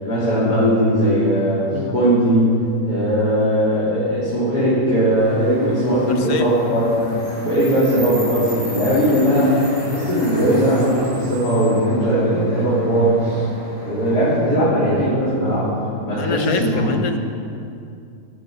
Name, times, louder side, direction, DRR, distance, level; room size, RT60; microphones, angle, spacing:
voice 1, 0.0-2.6 2.8-7.1 7.3-9.6 9.8-13.4 13.9-15.7 16.0-16.9, equal, 85° left, -11 dB, 4.5 m, -18 dB
sound 1, 5.2-14.4, equal, 20° right, 5.2 m, -35 dB
voice 2, 6.1-6.5 16.2-17.2, left 5 dB, 65° left, 7 dB, 1.5 m, -26 dB
18.0 x 13.0 x 5.3 m, 2.5 s
omnidirectional pair, 1.7 m